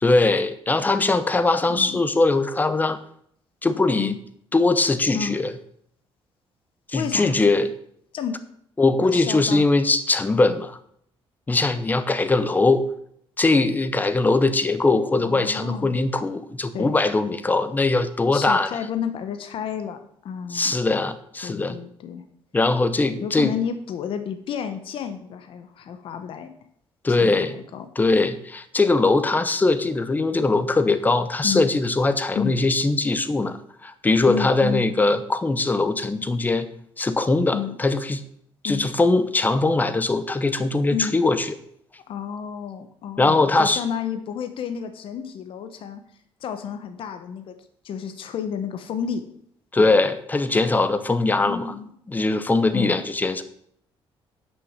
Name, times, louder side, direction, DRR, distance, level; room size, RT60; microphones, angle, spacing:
voice 1, 0.0-3.0 3.6-4.1 4.5-5.5 6.9-7.7 8.8-10.8 11.5-12.9 13.4-18.7 20.5-21.8 22.5-23.5 27.0-27.6 28.0-36.7 37.0-38.2 38.6-41.6 43.2-43.8 49.7-51.7 52.1-53.4, left 3 dB, 15° left, 12 dB, 0.8 m, -21 dB
voice 2, 1.7-2.0 3.9-4.2 5.1-5.4 6.9-7.4 8.1-8.4 9.0-9.7 15.2-16.0 16.7-16.9 18.3-20.8 21.4-22.2 23.2-26.5 27.2-27.9 31.4-31.7 32.3-32.6 34.2-34.8 37.5-37.8 38.6-38.9 40.9-41.1 42.1-46.0 46.4-47.5 47.8-49.2 49.8-49.9 51.3-51.9 52.7-53.0, left 7 dB, 60° left, 8 dB, 1.1 m, -31 dB
9.3 x 6.5 x 7.3 m, 0.68 s
cardioid pair, 140°, 10 cm